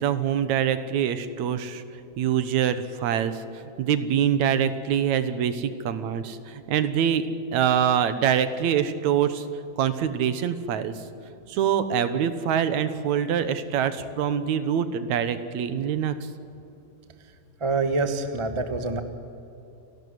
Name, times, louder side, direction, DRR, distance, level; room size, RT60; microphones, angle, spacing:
voice 1, 0.0-1.8 2.2-3.4 3.8-7.3 7.5-9.5 9.8-10.9 11.5-16.2, right 9 dB, 75° right, 12 dB, 2.5 m, -24 dB
voice 2, 17.6-19.0, right 3 dB, 30° right, 8 dB, 0.5 m, -26 dB
30.0 x 12.5 x 9.6 m, 2.8 s
omnidirectional pair, 3.3 m